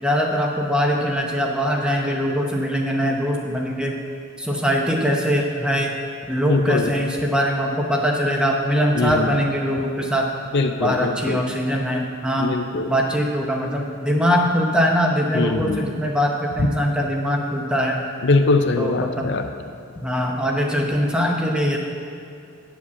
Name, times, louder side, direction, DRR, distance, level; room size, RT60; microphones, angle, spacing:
voice 1, 0.0-3.9 4.4-5.9 6.3-10.3 10.8-12.5 12.9-18.0 18.8-19.3 20.0-21.8, equal, 5° right, 0 dB, 0.8 m, -22 dB
voice 2, 6.5-6.9 8.9-9.4 10.5-11.4 12.4-12.9 15.3-15.9 18.2-19.5, left 3 dB, 55° left, 6 dB, 0.5 m, -21 dB
9.5 x 5.0 x 6.9 m, 2.4 s
head